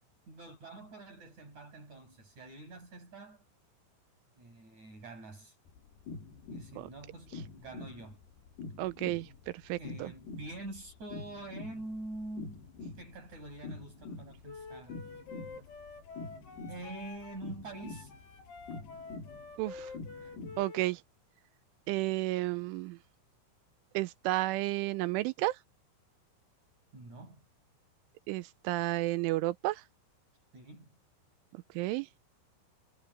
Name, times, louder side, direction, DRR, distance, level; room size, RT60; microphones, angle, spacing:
voice 1, 0.3-3.4 4.4-5.5 6.5-8.2 9.8-12.6 13.0-15.0 16.7-18.1 26.9-27.5 30.5-30.9, right 2 dB, 35° right, 7.5 m, -46 dB
sound 1, 5.7-20.6, left 3 dB, 55° left, 3.9 m, -46 dB
voice 2, 8.8-9.3 9.7-10.1 19.6-19.9 20.6-21.0 21.9-23.0 23.9-25.6 28.3-29.8 31.8-32.1, right 18 dB, 85° right, 3.0 m, -32 dB
Wind instrument woodwind instrument, 14.4-17.4 17.7-20.9, left 4 dB, 80° left, 9.9 m, -48 dB
omnidirectional pair, 6.0 m